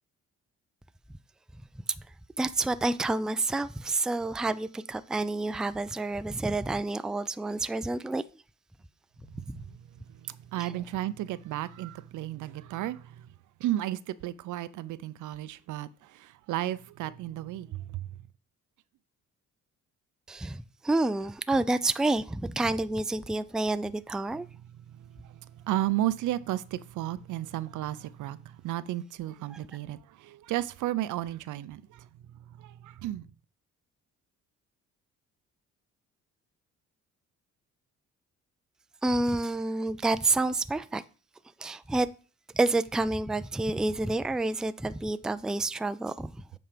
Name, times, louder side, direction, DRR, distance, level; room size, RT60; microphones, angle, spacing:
voice 1, 2.4-8.2 9.5-9.6 10.6-10.7 20.3-24.5 29.5-29.6 39.0-41.0 41.6-42.1 42.5-46.3, right 2 dB, ahead, 0.3 m, -29 dB
voice 2, 10.2-13.2 13.6-18.1 25.2-32.1 32.6-33.2, right 14 dB, 80° right, 0.6 m, -33 dB
7.8 x 4.3 x 5.0 m
cardioid pair, 90°, 30 cm